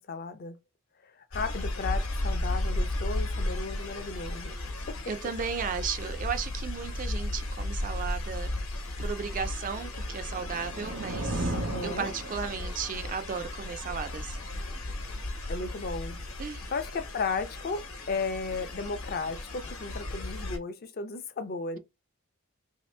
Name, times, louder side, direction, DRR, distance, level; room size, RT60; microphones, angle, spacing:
voice 1, 0.1-0.6 1.0-4.5 4.9-5.0 11.5-12.1 15.5-16.2 16.7-21.8, left 4 dB, 45° left, 0.5 m, -35 dB
sound 1, 1.3-20.6, left 1 dB, 70° left, 1.0 m, -35 dB
voice 2, 5.1-8.5 9.0-11.5 11.8-14.4 16.4-16.7, right 6 dB, 35° right, 0.3 m, -35 dB
sound 2, 10.0-12.9, right 1 dB, 85° right, 0.9 m, -35 dB
3.0 x 2.8 x 3.2 m
head